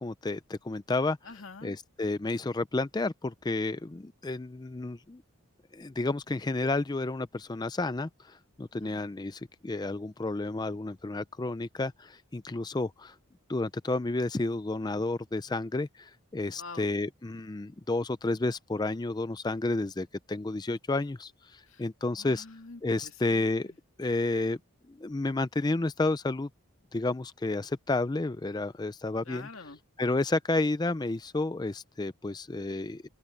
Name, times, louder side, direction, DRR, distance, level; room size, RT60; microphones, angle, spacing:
voice 1, 0.0-1.2 1.6-5.2 5.7-13.1 13.5-22.5 22.8-23.7 24.0-24.6 24.9-26.5 26.9-29.5 30.0-33.1, left 2 dB, 20° left, 0.4 m, -31 dB
voice 2, 1.2-1.7 8.7-9.0 16.6-16.9 21.7-21.8 22.2-23.8 29.2-29.8, left 4 dB, 65° left, 2.1 m, -47 dB
open air
head